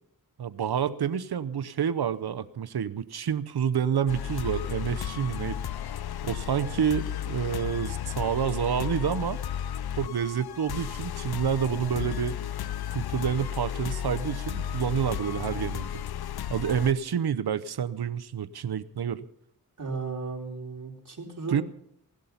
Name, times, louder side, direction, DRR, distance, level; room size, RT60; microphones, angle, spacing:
voice 1, 0.4-5.6 6.2-9.4 10.0-12.4 12.9-16.0 16.5-19.2 21.5-21.6, right 8 dB, 80° right, 13 dB, 0.8 m, -28 dB
sound 1, 4.1-16.9, left 10 dB, 75° left, 0.5 m, -33 dB
voice 2, 19.8-21.6, right 4 dB, 55° right, 0 dB, 3.8 m, -35 dB
18.0 x 12.0 x 5.7 m, 0.68 s
wide cardioid pair, 65°, 38 cm